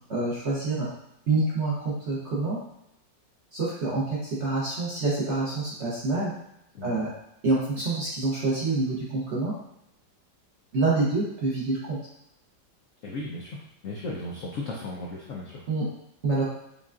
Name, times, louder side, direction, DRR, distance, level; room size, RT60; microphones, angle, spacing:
voice 1, 0.1-0.9 1.3-2.6 3.5-6.3 6.8-7.1 7.4-9.5 10.7-12.0 15.7-15.8 16.2-16.4, right 3 dB, 50° right, -6 dB, 0.9 m, -26 dB
voice 2, 13.0-15.6, left 2 dB, 70° left, -3 dB, 0.7 m, -36 dB
5.4 x 2.3 x 2.4 m, 0.81 s
omnidirectional pair, 1.9 m